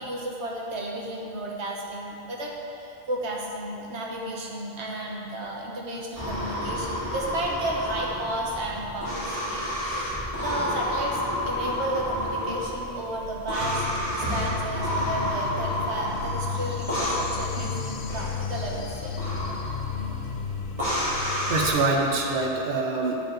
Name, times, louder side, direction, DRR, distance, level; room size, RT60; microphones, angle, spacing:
voice 1, 0.0-2.5 2.8-20.4, right 1 dB, 85° right, -2 dB, 1.3 m, -33 dB
sound 1, 6.1-21.7, equal, 30° right, 2.0 m, -30 dB
sound 2, 13.6-22.7, left 7 dB, 60° left, 0.6 m, -34 dB
voice 2, 21.0-23.3, right 3 dB, 60° right, 0 dB, 0.9 m, -26 dB
11.0 x 4.9 x 3.9 m, 3.0 s
omnidirectional pair, 1.1 m